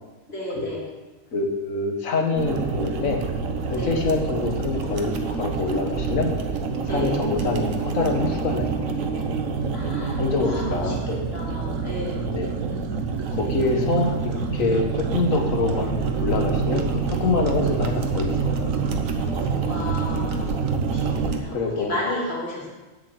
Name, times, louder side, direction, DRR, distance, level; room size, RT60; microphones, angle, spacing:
voice 1, 0.3-0.9 3.7-4.0 6.9-7.2 9.7-12.2 13.3-13.7 19.2-20.5 20.8-22.7, left 1 dB, 50° left, -4 dB, 3.0 m, -32 dB
voice 2, 1.3-3.2 3.7-6.3 6.9-9.3 10.2-11.0 12.3-12.6 13.3-18.7 21.5-21.9, left 3 dB, 85° left, 3 dB, 1.8 m, -25 dB
sound 1, 2.4-21.4, right 5 dB, 85° right, 1.4 m, -26 dB
7.6 x 6.9 x 8.0 m, 1.2 s
omnidirectional pair, 1.4 m